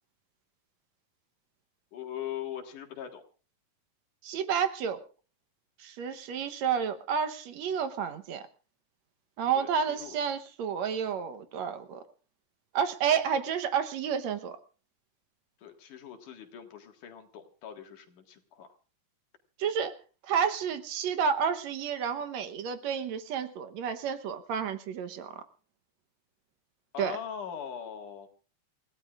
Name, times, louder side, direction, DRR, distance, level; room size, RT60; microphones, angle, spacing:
voice 1, 1.9-3.2 9.6-10.2 15.6-18.7 26.9-28.3, left 9 dB, 90° left, 4 dB, 3.4 m, -41 dB
voice 2, 4.2-5.0 5.8-8.4 9.4-12.0 12.7-14.6 19.6-20.0 20.3-25.4 27.0-27.2, right 7 dB, 70° right, 10 dB, 2.2 m, -30 dB
28.0 x 16.5 x 2.5 m, 0.36 s
omnidirectional pair, 3.5 m